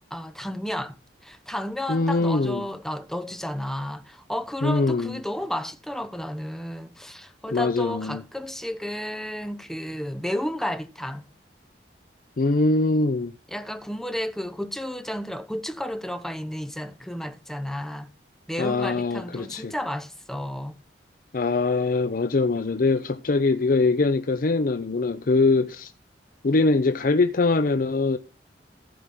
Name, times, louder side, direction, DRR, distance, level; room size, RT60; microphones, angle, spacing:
voice 1, 0.1-1.0 1.2-11.3 13.5-18.1 18.5-20.8, equal, ahead, 0.8 m, -32 dB
voice 2, 1.9-2.6 4.6-5.2 7.5-8.2 12.4-13.3 18.6-19.7 21.3-25.9 26.4-28.2, left 3 dB, 50° left, 0.6 m, -22 dB
15.0 x 5.1 x 6.0 m
head